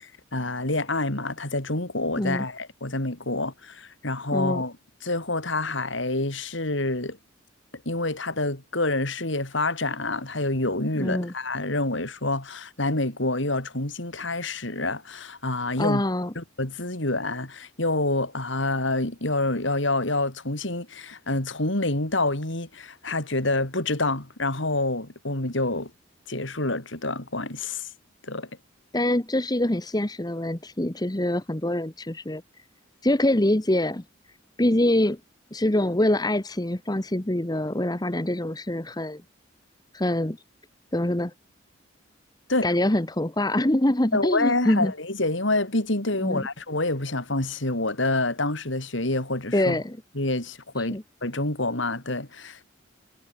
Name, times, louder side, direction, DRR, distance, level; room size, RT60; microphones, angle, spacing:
voice 1, 0.0-4.7 5.0-7.2 7.9-16.0 16.4-25.9 26.3-27.9 28.2-28.5 42.5-42.7 44.1-49.8 50.2-52.6, left 2 dB, 65° left, 3.9 m, -27 dB
voice 2, 4.3-4.6 11.0-11.3 15.8-16.3 28.9-32.4 33.0-34.0 34.6-35.2 35.5-39.2 39.9-40.4 40.9-41.3 42.6-44.9 46.2-46.5 49.5-50.0 50.8-51.0, left 1 dB, 20° left, 1.1 m, -24 dB
head